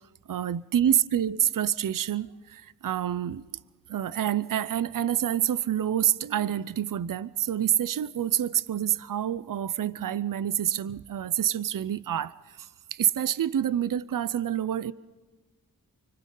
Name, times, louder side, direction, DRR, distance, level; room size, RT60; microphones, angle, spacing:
voice 1, 0.3-3.4 3.9-14.9, right 10 dB, 60° right, 0.6 m, -27 dB
30.0 x 24.5 x 3.9 m
wide cardioid pair, 65°, 37 cm